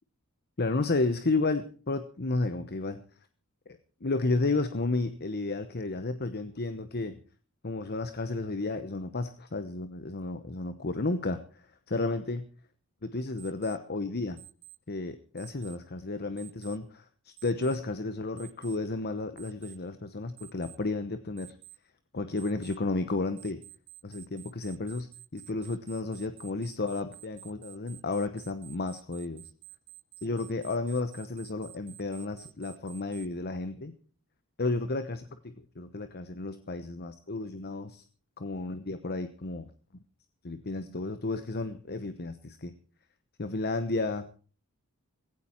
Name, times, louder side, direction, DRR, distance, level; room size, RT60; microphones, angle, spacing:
voice 1, 0.6-3.0 3.7-7.2 7.6-12.4 13.0-14.4 14.9-21.5 22.1-23.6 24.0-29.4 30.2-33.9 34.6-38.0 38.4-39.7 40.4-42.7 43.4-44.3, left 3 dB, 45° left, 10 dB, 1.0 m, -32 dB
Alarm, 13.4-13.8 14.4-14.8 15.4-15.8 16.4-16.8 17.4-17.8 18.4-18.8 19.4-19.8 20.4-20.8 21.4-21.8 22.4-22.8 23.4-33.3, right 17 dB, 90° right, 2.1 m, -50 dB
16.5 x 16.0 x 4.5 m, 0.39 s
head